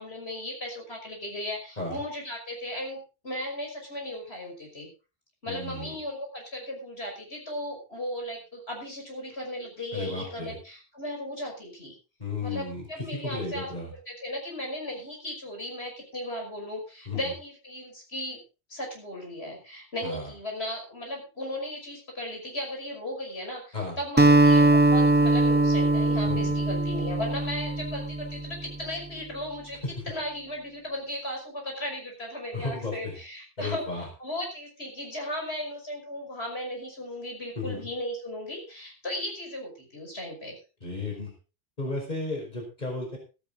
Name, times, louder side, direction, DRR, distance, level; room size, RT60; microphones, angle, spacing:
voice 1, 0.0-3.0 3.2-4.9 5.4-11.9 12.4-13.7 14.1-18.4 18.7-29.8 30.1-40.6, left 1 dB, 80° left, 1 dB, 6.0 m, -36 dB
voice 2, 5.5-6.0 9.9-10.6 12.2-13.9 17.1-17.3 20.0-20.3 23.7-24.0 26.2-26.5 29.8-29.9 32.5-33.2 33.6-34.1 37.6-37.9 40.8-41.3 41.8-43.2, left 3 dB, 45° left, 1 dB, 5.3 m, -34 dB
Acoustic guitar, 24.2-28.6, right 2 dB, 15° right, 0.4 m, -21 dB
15.0 x 12.5 x 3.8 m, 0.32 s
omnidirectional pair, 1.1 m